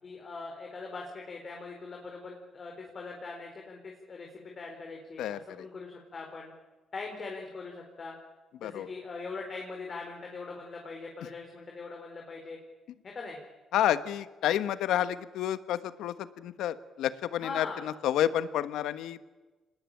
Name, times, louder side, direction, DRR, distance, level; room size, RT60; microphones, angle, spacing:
voice 1, 0.0-6.5 6.9-8.1 8.6-12.6 13.0-13.4 17.4-17.8, left 4 dB, 45° left, 1 dB, 4.5 m, -41 dB
voice 2, 5.2-5.7 8.6-8.9 13.7-19.2, left 11 dB, 85° left, 13 dB, 1.2 m, -30 dB
25.5 x 20.0 x 9.1 m, 1.2 s
cardioid pair, 90°, 0 cm